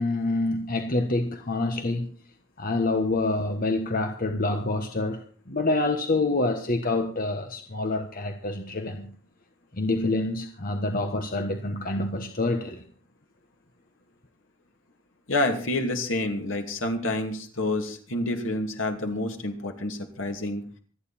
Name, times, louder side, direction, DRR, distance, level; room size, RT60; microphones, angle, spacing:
voice 1, 0.0-2.2 2.6-5.2 5.5-9.1 9.7-12.8, left 2 dB, 45° left, 1.4 m, -27 dB
voice 2, 15.3-20.6, left 2 dB, 85° left, 2.7 m, -28 dB
26.0 x 9.7 x 4.3 m
head